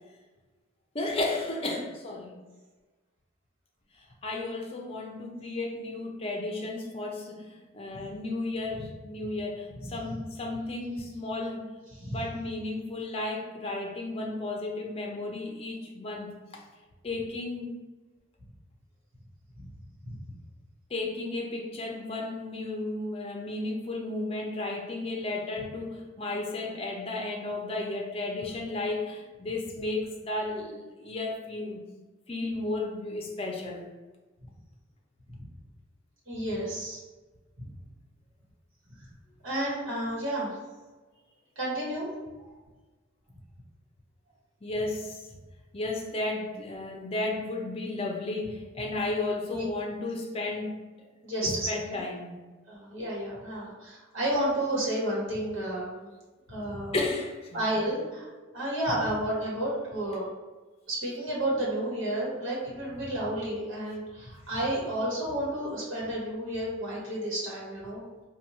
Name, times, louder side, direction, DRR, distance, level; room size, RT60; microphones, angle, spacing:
voice 1, 0.9-2.4 4.2-11.7 12.1-16.6 17.0-17.7 20.9-31.8 32.3-33.9 44.6-45.3 45.7-50.8 51.4-52.4 56.9-57.6, left 2 dB, 30° left, 1 dB, 0.5 m, -33 dB
voice 2, 36.3-37.0 37.6-37.7 39.4-40.5 41.6-42.1 42.4-42.5 49.5-49.6 51.2-52.0 52.7-56.1 56.5-57.0 57.5-58.3 58.5-60.3 60.9-68.0, right 1 dB, 70° right, -5 dB, 1.3 m, -31 dB
4.3 x 2.3 x 3.0 m, 1.3 s
head